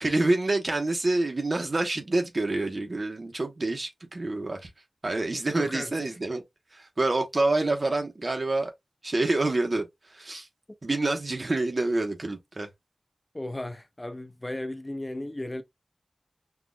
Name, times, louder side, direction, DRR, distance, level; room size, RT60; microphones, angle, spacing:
voice 1, 0.0-4.7 5.0-6.4 6.7-8.7 9.0-10.5 10.8-12.7, right 2 dB, 50° right, 1.0 m, -27 dB
voice 2, 5.5-5.9 13.3-15.6, left 1 dB, 20° left, 0.4 m, -35 dB
5.9 x 2.4 x 2.2 m
wide cardioid pair, 85°, 0 cm